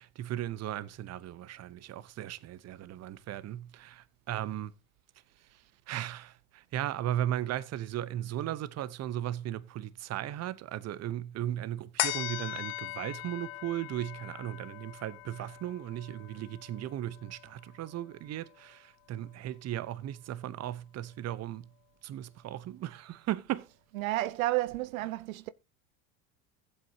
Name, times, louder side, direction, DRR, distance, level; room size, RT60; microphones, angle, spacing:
voice 1, 0.0-4.7 5.9-21.7 22.0-23.7, right 12 dB, 40° right, 0.8 m, -36 dB
sound 1, 12.0-18.7 19.2-19.3, left 16 dB, 75° left, 1.1 m, -40 dB
voice 2, 23.9-25.5, right 17 dB, 85° right, 0.6 m, -31 dB
15.0 x 8.0 x 2.7 m
hypercardioid pair, 95°, 41 cm